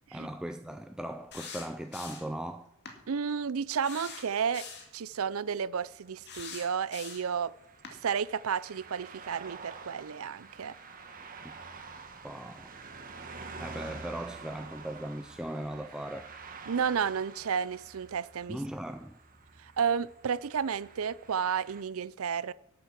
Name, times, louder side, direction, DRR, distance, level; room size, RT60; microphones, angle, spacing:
voice 1, 0.1-2.7 11.4-11.5 12.2-12.7 13.6-16.3 18.5-19.2, right 1 dB, 5° right, 0.4 m, -38 dB
sound 1, 1.3-2.4 2.8-3.0 3.8-4.9 6.2-7.4 7.8-8.0, left 5 dB, 50° left, 2.1 m, -44 dB
voice 2, 3.1-4.7 4.9-7.5 8.0-10.7 16.7-18.6 19.6-22.5, right 7 dB, 65° right, 0.5 m, -32 dB
sound 2, 5.8-21.8, right 4 dB, 40° right, 1.4 m, -48 dB
12.0 x 7.8 x 7.3 m
head